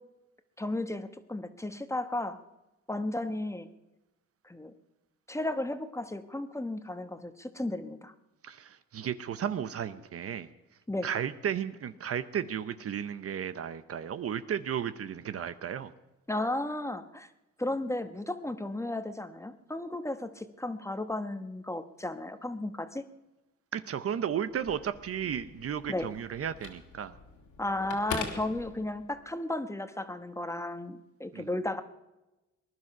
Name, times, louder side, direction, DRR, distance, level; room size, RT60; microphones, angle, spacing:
voice 1, 0.6-2.4 2.9-3.7 4.4-4.7 5.3-8.1 10.9-11.1 16.3-17.3 17.6-23.0 25.9-26.1 27.6-31.8, left 1 dB, 10° left, 9 dB, 1.1 m, -34 dB
voice 2, 8.4-10.5 11.0-15.9 23.7-27.1 31.3-31.5, right 8 dB, 50° right, 13 dB, 0.8 m, -34 dB
Telephone, 24.5-29.3, left 5 dB, 75° left, 2.9 m, -43 dB
20.0 x 11.0 x 6.0 m, 1.0 s
cardioid pair, 90°, 30 cm